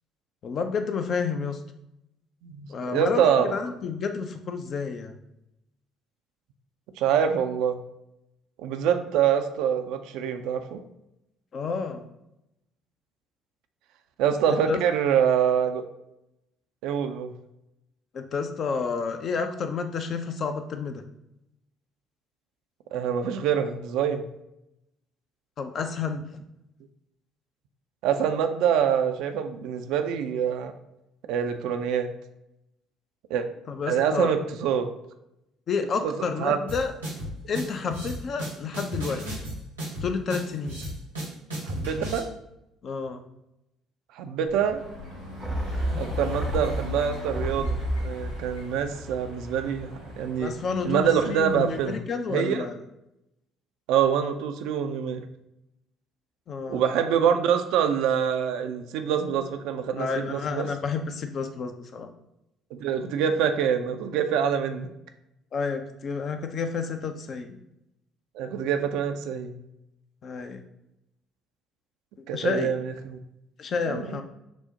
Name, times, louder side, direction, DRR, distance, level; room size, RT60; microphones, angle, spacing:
voice 1, 0.4-1.6 2.7-5.2 11.5-12.0 14.7-14.8 18.1-21.0 25.6-26.2 33.7-34.3 35.7-36.9 37.5-39.2 40.0-40.8 42.8-43.2 50.4-52.7 56.5-56.8 60.0-62.1 65.5-67.5 70.2-70.6 72.3-72.7 73.6-74.2, left 5 dB, 45° left, 7 dB, 0.4 m, -30 dB
voice 2, 2.4-3.5 7.0-7.8 8.6-10.8 14.2-15.8 16.8-17.3 22.9-24.2 28.0-30.7 31.3-32.1 33.3-33.5 33.9-34.9 36.0-36.6 41.6-42.3 44.1-44.8 45.9-47.8 48.0-50.5 50.8-52.0 52.3-52.7 53.9-55.2 56.7-60.7 62.7-64.9 68.3-69.6 72.3-73.2 73.8-74.2, right 8 dB, 60° right, 7 dB, 0.3 m, -25 dB
sound 1, 36.7-42.2, right 1 dB, 85° right, 1.1 m, -34 dB
sound 2, 44.5-51.9, left 4 dB, 90° left, 1.4 m, -39 dB
sound 3, 45.4-50.0 50.3-50.4, right 1 dB, 10° right, 0.5 m, -32 dB
6.1 x 2.1 x 2.8 m, 0.86 s
figure-of-eight pair, 50°, 0 cm